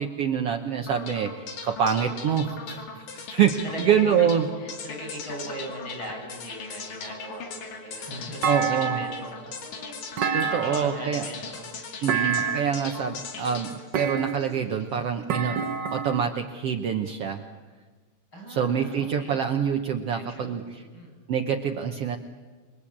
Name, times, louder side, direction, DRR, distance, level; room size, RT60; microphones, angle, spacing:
voice 1, 0.0-4.5 8.4-9.0 10.3-11.2 12.0-15.6 15.9-17.4 18.5-20.8 21.3-22.2, right 8 dB, 60° right, 4 dB, 1.8 m, -26 dB
sound 1, 0.9-15.0, left 4 dB, 90° left, 4.0 m, -39 dB
voice 2, 3.6-4.3 4.6-11.7 18.3-19.4 20.1-21.1, equal, 35° left, 3 dB, 7.7 m, -39 dB
Thump thud, 8.4-9.3 10.2-11.1 12.1-12.8 13.9-14.6 15.3-16.3, right 6 dB, 90° right, 0.9 m, -28 dB
28.0 x 21.5 x 8.7 m, 1.4 s
omnidirectional pair, 3.5 m